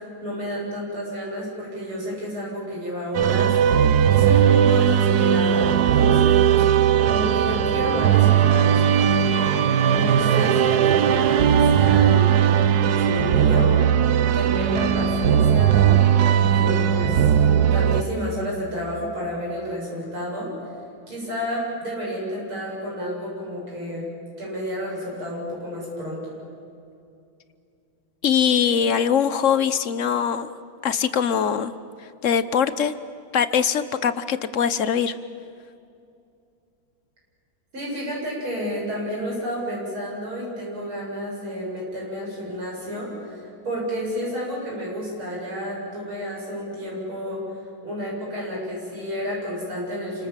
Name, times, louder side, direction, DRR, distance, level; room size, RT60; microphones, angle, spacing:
voice 1, 0.2-6.6 7.1-12.3 12.9-13.9 14.3-20.7 21.1-24.1 24.4-26.4 37.7-47.4 47.8-50.3, equal, 85° right, -3 dB, 8.6 m, -31 dB
sound 1, 3.1-18.0, right 9 dB, 60° right, 1.2 m, -18 dB
voice 2, 28.2-30.5 30.8-31.7 32.2-32.9 33.3-35.1, left 7 dB, 50° left, 13 dB, 1.0 m, -22 dB
29.0 x 26.0 x 7.6 m, 2.5 s
omnidirectional pair, 2.3 m